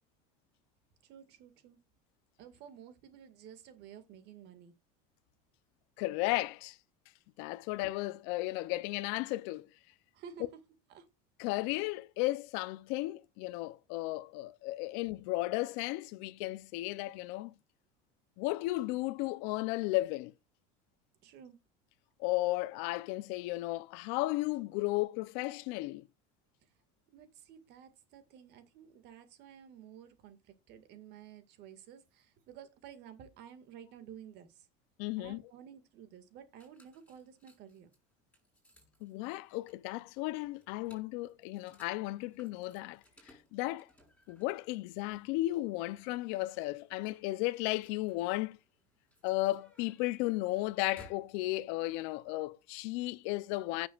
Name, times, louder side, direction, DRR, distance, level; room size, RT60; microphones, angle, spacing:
voice 1, 1.0-1.8 2.4-4.7 10.1-10.5 10.9-11.1 21.2-21.6 27.1-34.7 35.2-37.9, right 8 dB, 55° right, 2.0 m, -52 dB
voice 2, 6.0-6.8 7.4-9.7 11.4-17.5 18.4-20.3 22.2-26.1 35.0-35.4 39.0-43.0 43.5-43.9 44.3-48.6 49.2-53.9, left 19 dB, 70° left, 0.7 m, -34 dB
sound 1, 36.6-51.3, equal, 5° left, 6.8 m, -64 dB
15.5 x 7.1 x 2.5 m
cardioid pair, 140°, 20 cm